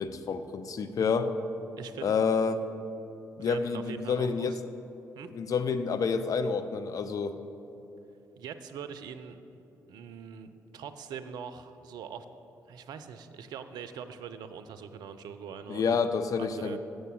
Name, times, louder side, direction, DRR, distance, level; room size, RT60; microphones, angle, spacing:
voice 1, 0.0-1.3 2.0-2.6 3.4-4.5 5.3-7.4 15.7-16.8, left 5 dB, 50° left, 10 dB, 0.5 m, -28 dB
voice 2, 1.8-2.1 3.4-4.6 5.2-5.3 8.4-9.4 9.9-12.3 12.7-16.0 16.4-16.8, right 7 dB, 65° right, 10 dB, 0.5 m, -42 dB
6.7 x 6.5 x 6.2 m, 2.9 s
hypercardioid pair, 45°, 8 cm